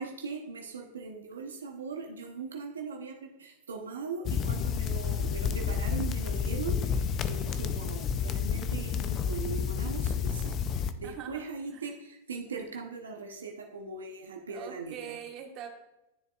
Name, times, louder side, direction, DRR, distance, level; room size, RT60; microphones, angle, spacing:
voice 1, 0.0-15.2, right 4 dB, 90° right, 2 dB, 0.9 m, -40 dB
sound 1, 4.2-10.9, left 7 dB, 35° left, 0.5 m, -30 dB
voice 2, 11.0-11.8 14.5-15.7, right 9 dB, 45° right, 3 dB, 1.3 m, -43 dB
11.0 x 7.0 x 2.4 m, 0.95 s
hypercardioid pair, 110°, 0 cm